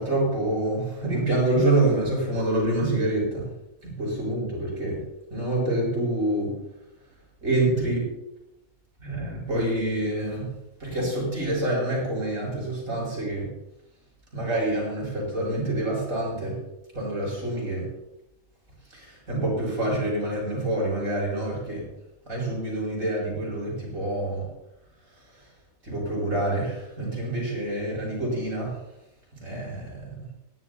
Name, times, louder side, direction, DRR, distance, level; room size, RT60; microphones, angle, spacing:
voice 1, 0.0-3.5 3.8-5.0 5.3-6.6 7.4-8.1 9.0-10.5 10.8-13.5 14.3-16.6 16.9-17.9 18.9-21.9 22.3-24.5 25.8-28.8 29.3-30.2, right 1 dB, 70° right, -3 dB, 7.4 m, -27 dB
21.5 x 14.0 x 2.8 m, 0.92 s
omnidirectional pair, 1.5 m